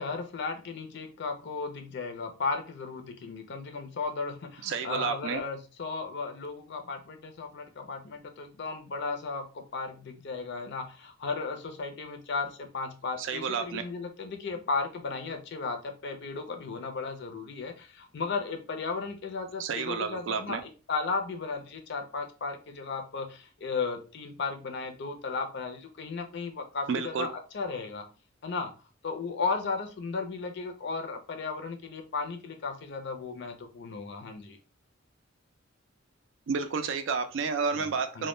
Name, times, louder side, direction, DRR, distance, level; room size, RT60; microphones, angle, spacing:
voice 1, 0.0-28.0 28.4-28.7 29.0-34.6 37.7-37.9 38.1-38.3, left 4 dB, 60° left, 5 dB, 0.5 m, -35 dB
voice 2, 4.6-5.4 13.2-13.8 19.6-20.6 26.9-27.3 36.5-38.3, right 5 dB, 70° right, 8 dB, 0.4 m, -30 dB
2.1 x 2.1 x 3.0 m, 0.35 s
head